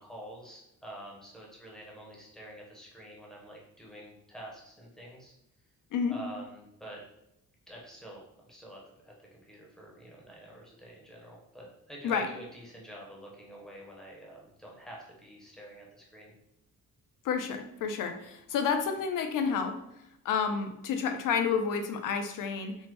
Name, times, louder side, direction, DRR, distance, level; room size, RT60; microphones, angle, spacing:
voice 1, 0.0-5.3 6.1-7.0 7.7-16.3, right 1 dB, ahead, -3 dB, 0.6 m, -47 dB
voice 2, 17.2-19.8 20.2-22.8, left 6 dB, 65° left, 6 dB, 0.5 m, -30 dB
3.4 x 2.1 x 3.0 m, 0.81 s
cardioid pair, 150°, 35 cm